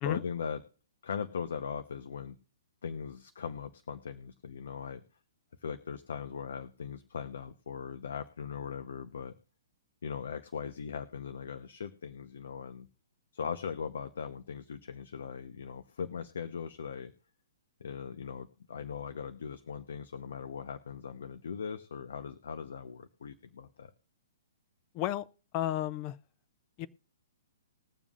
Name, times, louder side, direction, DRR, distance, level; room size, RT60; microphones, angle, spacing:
voice 1, 0.0-0.6 1.0-2.4 2.8-5.0 5.6-9.3 10.0-12.9 13.3-17.1 17.8-23.9, left 6 dB, 75° left, 0.8 m, -39 dB
voice 2, 24.9-25.2 25.5-26.2 26.8-26.9, left 13 dB, 25° left, 0.4 m, -32 dB
21.0 x 7.3 x 2.5 m
hypercardioid pair, 175°, 0 cm